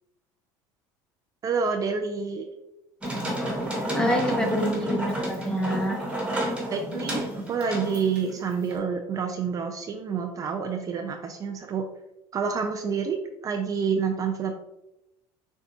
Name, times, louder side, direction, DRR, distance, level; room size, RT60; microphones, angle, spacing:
voice 1, 1.4-2.5 6.7-11.8 12.3-13.2 13.4-14.5, right 6 dB, 35° right, 4 dB, 0.4 m, -28 dB
sound 1, 3.0-8.7, equal, 10° right, 1.3 m, -30 dB
voice 2, 3.9-6.0, equal, 5° left, 1 dB, 0.9 m, -26 dB
6.6 x 2.3 x 2.8 m, 0.91 s
supercardioid pair, 105°, 10 cm